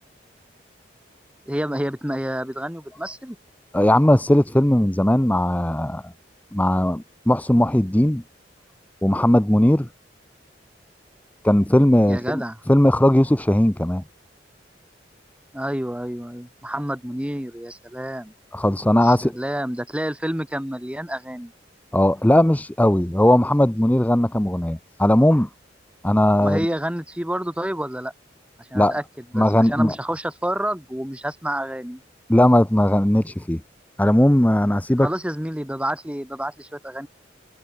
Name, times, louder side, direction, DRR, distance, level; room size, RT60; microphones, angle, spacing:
voice 1, 1.5-3.4 12.1-12.6 15.5-18.3 19.0-21.5 26.3-28.1 28.6-29.0 29.3-32.0 35.0-37.1, right 1 dB, 5° right, 1.8 m, -29 dB
voice 2, 3.7-6.1 6.5-8.2 9.0-9.9 11.4-12.4 12.7-14.0 18.5-19.4 21.9-25.5 26.0-26.7 28.7-29.0 29.3-29.9 32.3-33.6 34.0-35.1, left 1 dB, 10° left, 0.7 m, -18 dB
head